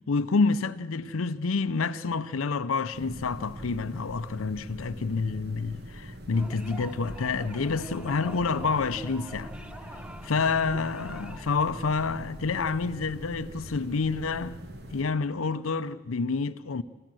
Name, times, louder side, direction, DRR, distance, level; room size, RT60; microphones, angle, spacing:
voice 1, 0.1-9.5 10.2-14.6 14.9-16.8, left 4 dB, 80° left, 0.6 m, -28 dB
sound 1, 2.9-15.0, equal, 50° right, 1.7 m, -43 dB
sound 2, 6.3-11.7, right 1 dB, 5° right, 0.7 m, -44 dB
26.0 x 14.5 x 7.7 m
head